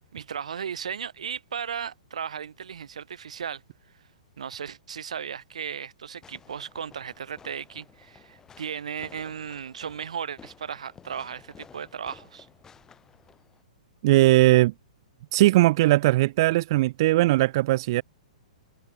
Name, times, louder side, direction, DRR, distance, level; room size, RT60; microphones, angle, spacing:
voice 1, 0.1-3.6 4.4-12.5, right 7 dB, 60° right, 2.3 m, -36 dB
Fireworks, 6.2-13.6, left 6 dB, 15° left, 7.6 m, -54 dB
voice 2, 14.0-14.7 15.3-18.0, right 17 dB, 40° right, 0.4 m, -19 dB
figure-of-eight pair, 110°, 4 cm